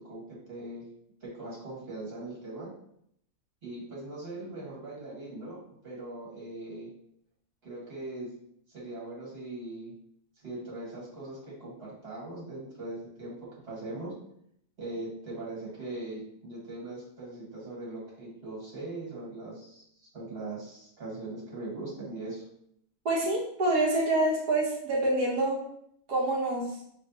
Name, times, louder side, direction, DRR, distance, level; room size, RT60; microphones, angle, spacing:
voice 1, 0.1-0.9 1.2-2.7 3.6-5.6 5.8-6.9 7.6-8.3 8.7-9.9 10.4-14.1 14.8-22.4, right 2 dB, 40° right, -5 dB, 1.8 m, -40 dB
voice 2, 23.0-25.7 26.1-26.8, right 2 dB, 90° right, -3 dB, 1.6 m, -26 dB
5.6 x 3.2 x 2.6 m, 0.70 s
omnidirectional pair, 1.6 m